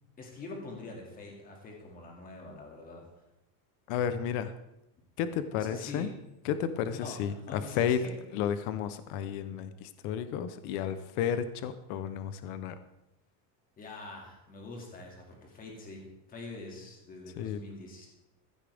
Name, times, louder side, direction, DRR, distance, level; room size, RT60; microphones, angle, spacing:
voice 1, 0.2-3.0 5.5-6.1 6.9-8.2 13.8-18.1, left 3 dB, 15° left, 0 dB, 2.2 m, -44 dB
voice 2, 3.9-4.5 5.2-6.1 6.4-8.0 8.3-12.8 17.4-17.6, left 8 dB, 40° left, 11 dB, 0.7 m, -32 dB
15.0 x 12.5 x 3.4 m, 0.90 s
supercardioid pair, 175°, 48 cm